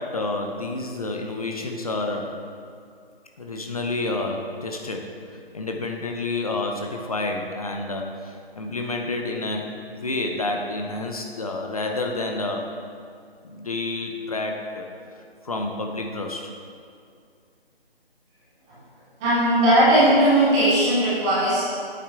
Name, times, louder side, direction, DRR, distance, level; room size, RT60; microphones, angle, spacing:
voice 1, 0.0-2.4 3.4-12.6 13.4-14.9 15.4-16.5, left 2 dB, 35° left, 2 dB, 0.7 m, -29 dB
voice 2, 19.2-21.6, right 1 dB, 5° right, -12 dB, 0.7 m, -18 dB
8.6 x 8.6 x 3.5 m, 2.4 s
figure-of-eight pair, 160°, 31 cm